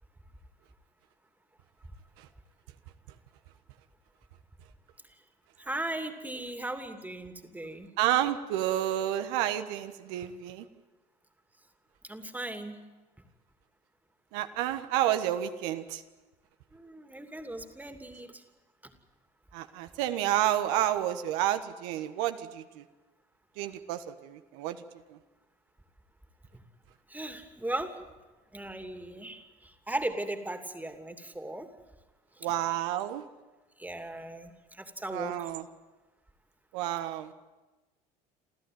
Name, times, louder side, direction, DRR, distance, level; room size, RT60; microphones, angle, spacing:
voice 1, 5.6-7.9 12.0-12.8 16.7-18.4 18.8-18.9 26.5-26.6 27.1-28.0 28.5-31.7 32.4-32.5 33.8-35.5, right 1 dB, 10° right, 6 dB, 2.7 m, -37 dB
voice 2, 8.0-10.7 14.3-16.0 19.5-22.8 23.6-24.8 25.1-25.2 32.4-33.2 35.1-35.6 36.7-37.3, right 12 dB, 70° right, 9 dB, 1.4 m, -30 dB
28.0 x 14.0 x 9.4 m, 1.2 s
hypercardioid pair, 75°, 21 cm